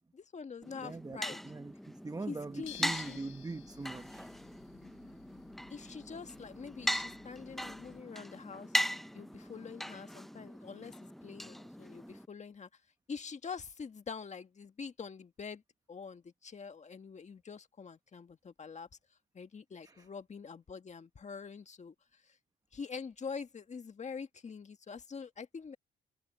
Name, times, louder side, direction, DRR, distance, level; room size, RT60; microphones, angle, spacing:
voice 1, 0.1-1.4 2.3-3.2 5.7-8.7 9.1-12.7 13.1-15.6 15.9-18.9 19.3-22.4 22.7-25.8, left 5 dB, 35° left, 1.8 m, -45 dB
sound 1, 0.6-12.3, equal, ahead, 0.7 m, -40 dB
voice 2, 0.8-1.2 1.4-4.3 19.8-20.1, right 3 dB, 20° right, 1.1 m, -42 dB
sound 2, 2.6-8.0, left 11 dB, 80° left, 3.9 m, -55 dB
cardioid pair, 90°, 20 cm